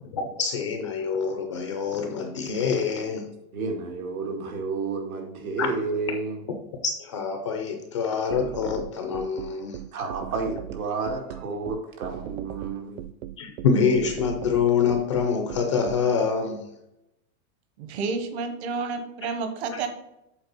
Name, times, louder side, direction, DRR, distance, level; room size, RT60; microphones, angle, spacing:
voice 1, 0.1-3.3 5.6-5.7 6.8-9.8 13.4-16.7 19.7-19.8, left 6 dB, 25° left, 5 dB, 0.4 m, -25 dB
voice 2, 3.5-6.4 9.9-13.0, right 4 dB, 85° right, 2 dB, 2.3 m, -31 dB
sound 1, 8.3-16.0, right 13 dB, 70° right, 0.5 m, -37 dB
voice 3, 17.8-19.9, right 4 dB, 50° right, 6 dB, 1.2 m, -30 dB
8.0 x 4.1 x 5.3 m, 0.87 s
supercardioid pair, 170°, 41 cm